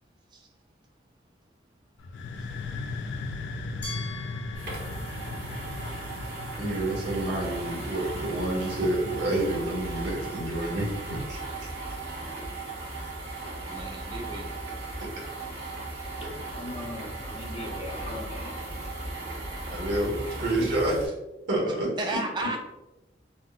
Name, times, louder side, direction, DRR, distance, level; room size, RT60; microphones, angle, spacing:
sound 1, 2.0-9.6, left 3 dB, 85° left, 0.3 m, -38 dB
Glass, 3.8-6.7, left 3 dB, 65° left, 1.0 m, -44 dB
sound 2, 4.5-21.1, right 2 dB, 70° right, 1.4 m, -37 dB
voice 1, 6.6-11.7 19.7-21.1 21.5-21.9, right 1 dB, 90° right, -2 dB, 1.1 m, -28 dB
voice 2, 13.7-14.5 22.0-22.6, right 2 dB, 25° right, 2 dB, 0.4 m, -33 dB
voice 3, 16.2-18.5, left 1 dB, 35° left, -1 dB, 0.6 m, -39 dB
3.6 x 2.0 x 2.4 m, 1.0 s
head